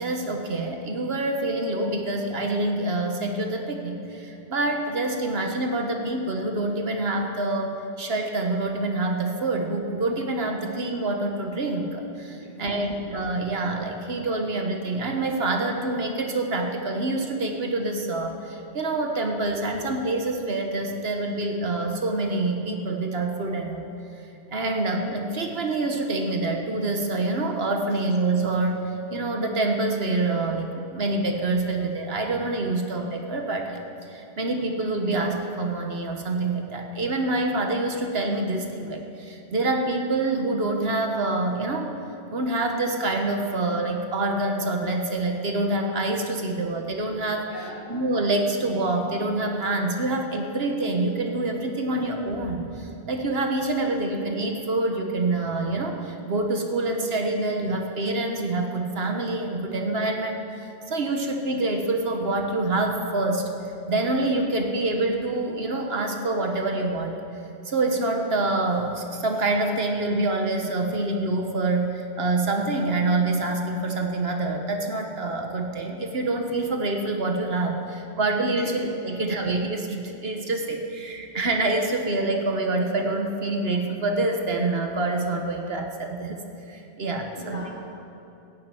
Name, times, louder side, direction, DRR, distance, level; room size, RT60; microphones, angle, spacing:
voice 1, 0.0-23.9 24.5-28.8 29.1-41.9 42.3-47.5 47.9-63.4 63.9-67.2 67.6-86.4 86.7-87.6, right 2 dB, 65° right, 3 dB, 1.4 m, -26 dB
voice 2, 12.4-13.0 47.5-47.8 78.6-78.7 87.3-87.7, left 1 dB, 55° left, -8 dB, 4.3 m, -40 dB
15.0 x 7.4 x 9.0 m, 2.8 s
omnidirectional pair, 1.1 m